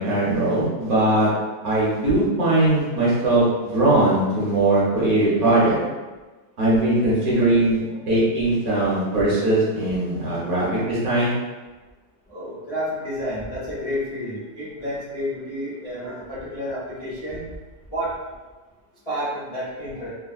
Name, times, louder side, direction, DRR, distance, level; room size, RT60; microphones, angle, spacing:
voice 1, 0.0-5.8 6.6-11.4, right 2 dB, 60° right, -8 dB, 1.3 m, -20 dB
voice 2, 12.3-17.4 17.9-18.1 19.0-20.1, equal, 25° left, -12 dB, 0.8 m, -30 dB
3.5 x 2.2 x 2.3 m, 1.2 s
omnidirectional pair, 1.8 m